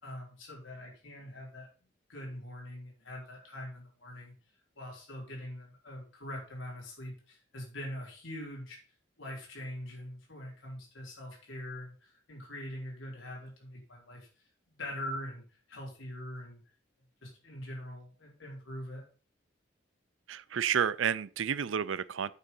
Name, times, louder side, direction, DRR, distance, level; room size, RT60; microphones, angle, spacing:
voice 1, 0.0-1.7 2.1-4.3 4.8-8.8 9.2-14.3 14.7-15.4 15.7-16.6 17.2-19.0, left 1 dB, 80° left, 4.6 m, -43 dB
voice 2, 20.3-22.3, right 8 dB, 80° right, 0.5 m, -30 dB
8.4 x 6.7 x 5.4 m
head